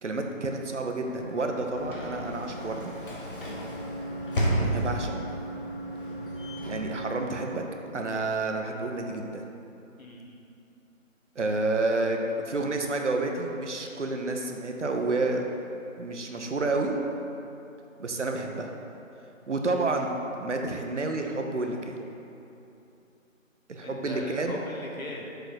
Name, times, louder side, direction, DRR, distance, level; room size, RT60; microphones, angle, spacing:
voice 1, 0.0-2.9 4.6-5.2 6.7-7.6 7.9-9.4 11.4-15.4 16.0-16.9 18.0-18.7 19.5-22.0 23.7-24.6, right 2 dB, 60° right, 3 dB, 0.9 m, -29 dB
Sliding door / Slam, 0.9-8.0, right 1 dB, 40° left, 1.0 m, -33 dB
voice 2, 3.4-3.7 10.0-10.4 23.8-25.3, left 1 dB, 85° left, -2 dB, 1.6 m, -39 dB
6.7 x 4.0 x 6.2 m, 2.9 s
figure-of-eight pair, 160°, 40 cm